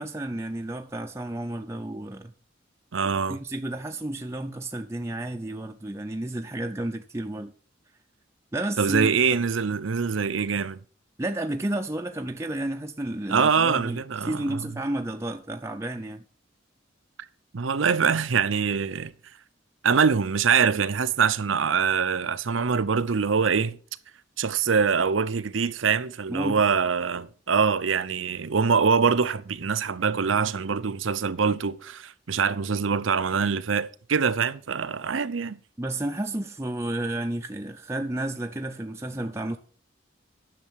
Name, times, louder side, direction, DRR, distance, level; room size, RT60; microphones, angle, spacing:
voice 1, 0.0-2.3 3.3-7.5 8.5-9.4 11.2-16.2 26.3-26.6 35.8-39.6, right 1 dB, 15° right, 0.6 m, -31 dB
voice 2, 2.9-3.4 8.8-10.8 13.3-14.6 17.5-19.1 19.8-23.8 24.4-35.6, right 6 dB, 85° right, 0.7 m, -24 dB
10.5 x 6.7 x 6.3 m
head